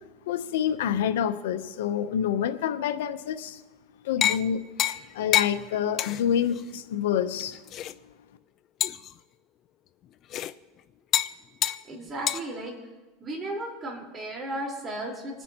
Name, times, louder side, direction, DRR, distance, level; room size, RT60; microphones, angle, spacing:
voice 1, 0.3-3.6 4.0-4.6 5.1-7.6, left 9 dB, 85° left, 10 dB, 0.9 m, -27 dB
sound 1, 4.2-4.4 4.8-5.1 5.3-5.5 6.0-6.2 6.6-6.7 7.4-7.9 8.8-9.1 10.3-10.5 11.1-11.3 11.6-11.8 12.3-12.4, left 12 dB, 45° left, 0.5 m, -26 dB
voice 2, 11.9-12.7 13.2-15.4, right 1 dB, 25° right, -1 dB, 4.4 m, -35 dB
27.0 x 9.9 x 3.0 m, 1.2 s
supercardioid pair, 120°, 0 cm